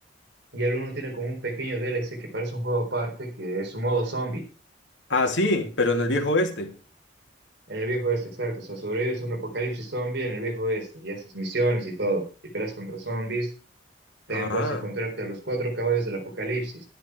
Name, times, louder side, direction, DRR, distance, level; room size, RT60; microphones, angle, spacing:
voice 1, 0.5-4.4 7.7-12.3 12.5-13.5 14.3-16.8, right 2 dB, 65° right, 4.0 m, -29 dB
voice 2, 5.1-6.7 14.3-14.8, left 2 dB, 80° left, 2.6 m, -24 dB
11.5 x 10.5 x 4.7 m
head